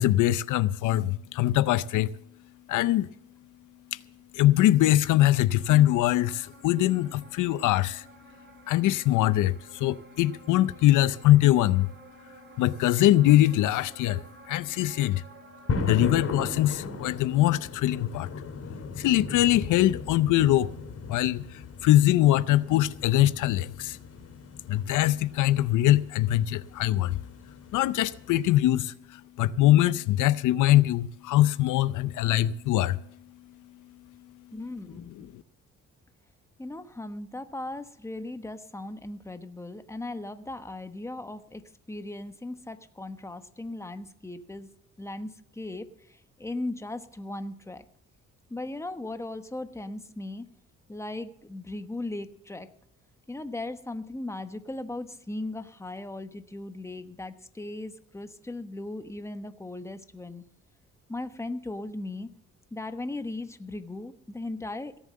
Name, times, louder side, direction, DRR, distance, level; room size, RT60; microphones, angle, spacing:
voice 1, 0.0-2.1 2.7-3.1 3.9-4.0 4.3-8.1 8.7-11.9 12.6-15.2 15.8-18.3 19.0-20.7 21.1-24.0 24.7-27.2 27.7-33.0 35.1-35.4, left 14 dB, 80° left, 0.6 m, -23 dB
sound 1, 5.6-15.8, right 3 dB, 35° right, 4.8 m, -52 dB
sound 2, 15.7-28.6, left 3 dB, 55° left, 3.5 m, -37 dB
voice 2, 34.5-35.3 36.6-41.6 41.9-47.8 48.5-50.4 50.9-52.7 53.3-60.4 61.1-62.3 62.7-65.0, left 2 dB, 10° left, 1.1 m, -37 dB
17.5 x 7.3 x 7.5 m
cardioid pair, 90°, 30 cm